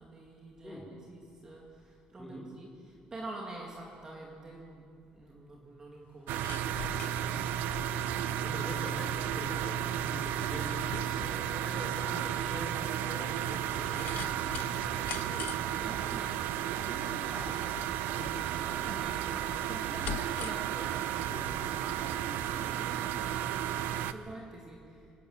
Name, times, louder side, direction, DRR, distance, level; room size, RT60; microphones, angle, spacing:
voice 1, 0.0-7.6 15.7-16.4 16.6-17.9 18.5-21.4 21.7-25.1, right 2 dB, 20° right, -2 dB, 2.4 m, -47 dB
voice 2, 2.2-2.5 7.6-7.9 8.2-9.8 10.1-15.6 16.9-17.2 18.0-18.5 21.3-21.9 22.8-22.9, left 1 dB, 10° left, 1 dB, 3.7 m, -45 dB
sound 1, 6.1-23.7 24.0-24.1, left 12 dB, 65° left, 0.7 m, -47 dB
sound 2, 6.3-24.1, right 10 dB, 75° right, 0.8 m, -33 dB
26.0 x 12.5 x 8.8 m, 2.3 s
cardioid pair, 160°, 3 cm